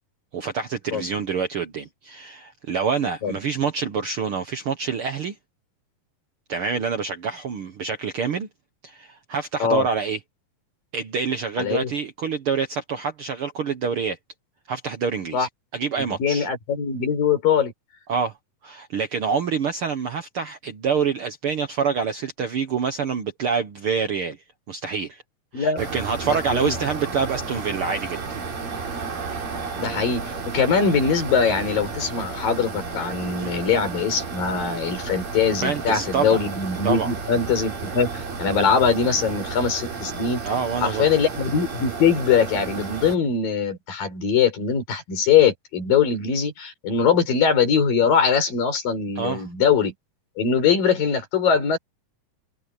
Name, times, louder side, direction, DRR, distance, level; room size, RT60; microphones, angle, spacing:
voice 1, 0.3-5.3 6.5-8.5 8.8-10.2 10.9-14.2 14.7-15.5 15.7-16.5 18.1-18.3 18.6-24.4 24.7-25.2 25.5-28.2 33.4-33.5 35.6-36.4 36.8-37.1 40.4-41.0 49.2-49.5, right 6 dB, 65° right, 1.4 m, -26 dB
voice 2, 11.6-11.9 15.3-15.5 16.2-17.7 25.5-25.8 26.2-26.7 29.8-40.4 40.8-49.9 50.4-51.8, left 6 dB, 85° left, 6.2 m, -22 dB
sound 1, 25.8-43.2, right 4 dB, 85° right, 6.0 m, -32 dB
omnidirectional pair, 3.9 m